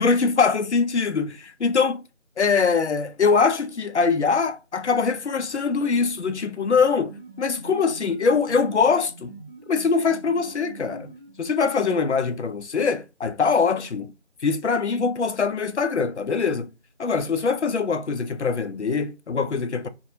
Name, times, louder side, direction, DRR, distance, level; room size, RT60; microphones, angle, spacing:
voice 1, 0.0-2.0 2.4-9.3 9.7-11.1 11.4-14.1 14.4-16.7 17.0-19.9, left 5 dB, 70° left, 0.5 m, -23 dB
sound 1, 6.8-11.7, right 1 dB, 40° right, 0.9 m, -44 dB
2.4 x 2.2 x 2.7 m
figure-of-eight pair, 180°, 36 cm